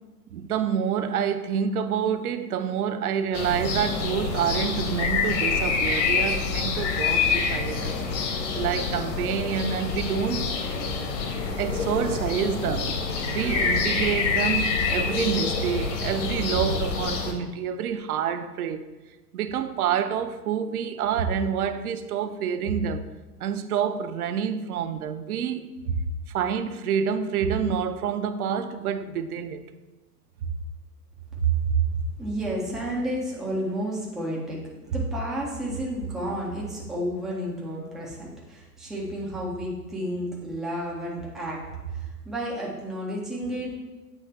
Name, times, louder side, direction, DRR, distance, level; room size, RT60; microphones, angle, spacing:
voice 1, 0.3-8.0 8.5-10.5 11.6-18.9 19.3-23.1 23.4-26.0 26.3-29.6 30.4-30.5, right 7 dB, 60° right, 9 dB, 0.7 m, -28 dB
sound 1, 3.3-17.3, left 4 dB, 45° left, 1.1 m, -26 dB
voice 2, 31.3-34.6 34.9-43.7, right 2 dB, ahead, -5 dB, 0.4 m, -30 dB
8.3 x 3.1 x 4.2 m, 1.2 s
figure-of-eight pair, 105°, 49 cm